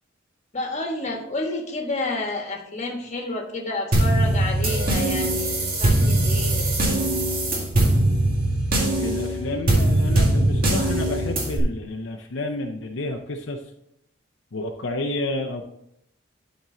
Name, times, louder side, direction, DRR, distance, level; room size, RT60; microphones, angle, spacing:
voice 1, 0.5-6.7, left 2 dB, 35° left, 1 dB, 1.4 m, -30 dB
sound 1, 3.9-11.6, right 1 dB, 45° right, 1.8 m, -21 dB
voice 2, 9.0-13.6 14.5-15.7, left 2 dB, 70° left, 3 dB, 0.6 m, -30 dB
12.0 x 4.4 x 3.8 m, 0.76 s
head